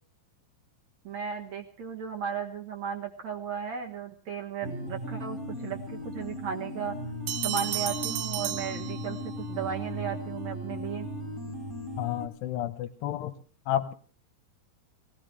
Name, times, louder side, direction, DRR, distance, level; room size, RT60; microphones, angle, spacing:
voice 1, 1.0-7.0 7.4-11.1, right 7 dB, 65° right, 3 dB, 1.8 m, -35 dB
sound 1, 4.6-12.3, left 1 dB, ahead, 2.6 m, -37 dB
sound 2, 7.3-9.5, right 13 dB, 80° right, 3.2 m, -33 dB
voice 2, 12.0-13.4 13.7-13.9, left 12 dB, 75° left, 12 dB, 2.6 m, -31 dB
20.5 x 18.0 x 3.2 m, 0.42 s
omnidirectional pair, 5.4 m